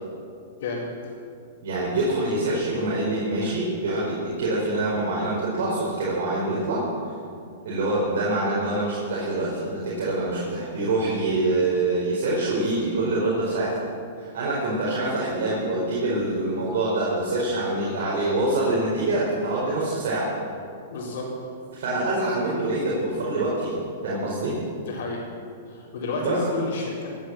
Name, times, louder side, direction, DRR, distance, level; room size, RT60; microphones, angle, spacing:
voice 1, 0.6-1.1 20.9-21.3 24.8-25.3 25.7-27.1, left 3 dB, 70° left, -8 dB, 4.2 m, -30 dB
voice 2, 1.6-6.9 7.6-13.8 14.2-20.3 21.7-23.7 24.0-24.6 26.2-26.4, right 2 dB, 70° right, -6 dB, 4.8 m, -25 dB
18.0 x 9.7 x 7.4 m, 2.4 s
hypercardioid pair, 140°, 0 cm